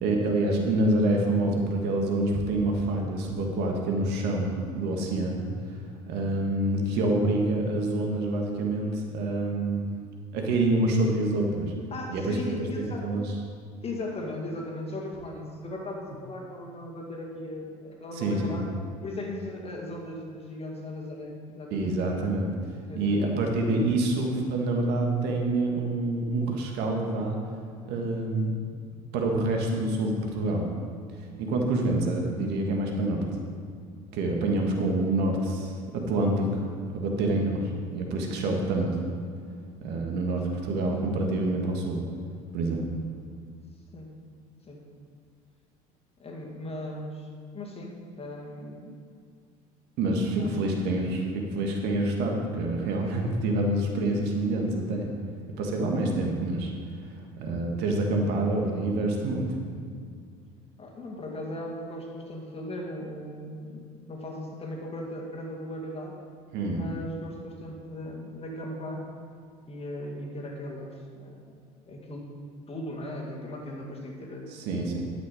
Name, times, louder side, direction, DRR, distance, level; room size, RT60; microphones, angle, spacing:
voice 1, 0.0-5.8 6.1-9.8 10.3-11.7 12.1-12.4 12.7-13.2 18.2-18.6 21.7-22.5 22.9-27.4 27.8-28.6 29.1-30.6 31.2-33.2 34.1-35.7 36.1-38.9 39.8-42.0 42.5-42.8 50.0-55.1 55.6-56.7 57.0-59.5 66.5-66.8 74.5-75.0, right 2 dB, 65° right, 1 dB, 1.7 m, -27 dB
voice 2, 11.9-13.1 13.8-18.7 19.0-21.9 22.9-23.3 43.9-44.1 44.6-44.8 46.2-47.3 47.5-49.0 50.4-50.6 60.8-66.1 66.7-69.0 69.6-71.5 71.9-72.3 72.7-74.5 74.8-75.0, left 1 dB, 30° left, 0 dB, 2.1 m, -38 dB
11.5 x 6.1 x 4.9 m, 2.2 s
hypercardioid pair, 70°, 19 cm